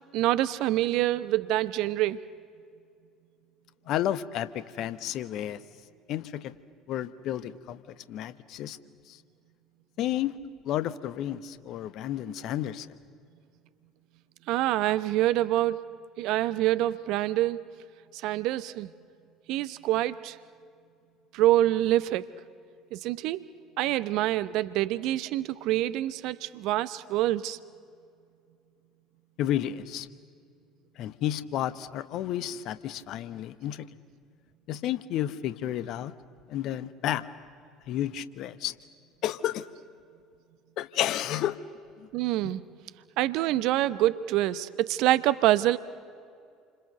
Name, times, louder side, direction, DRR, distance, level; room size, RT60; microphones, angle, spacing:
voice 1, 0.1-2.2 14.5-15.9 16.2-17.6 18.1-18.9 19.5-20.4 21.3-22.3 22.9-23.4 23.8-27.6 42.1-42.6 43.2-45.8, right 15 dB, 60° right, 15 dB, 0.8 m, -26 dB
voice 2, 3.9-5.6 6.1-6.5 6.9-8.8 9.1-9.2 10.0-10.4 10.6-12.9 29.4-30.1 31.0-33.9 34.7-36.1 36.5-37.3 37.9-38.8 39.2-39.7 40.8-41.6 42.0-42.1 42.4-42.5, left 12 dB, 55° left, 15 dB, 1.0 m, -31 dB
28.5 x 26.0 x 6.8 m, 2.3 s
figure-of-eight pair, 60°, 0 cm